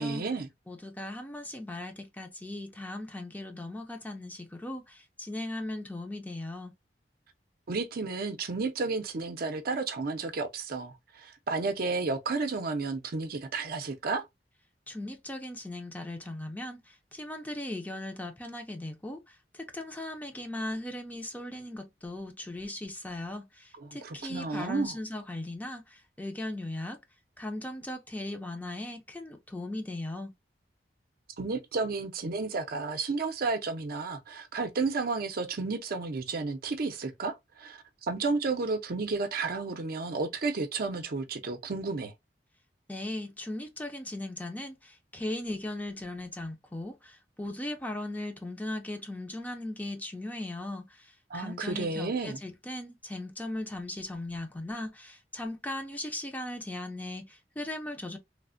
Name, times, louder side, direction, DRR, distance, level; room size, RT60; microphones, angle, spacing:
voice 1, 0.0-0.5 7.7-14.3 23.8-25.0 31.4-42.1 51.3-52.4, right 3 dB, 55° right, 0.5 m, -32 dB
voice 2, 0.7-6.7 14.9-27.0 27.4-30.3 42.9-58.2, left 1 dB, 10° left, 0.5 m, -38 dB
3.2 x 2.1 x 2.5 m
head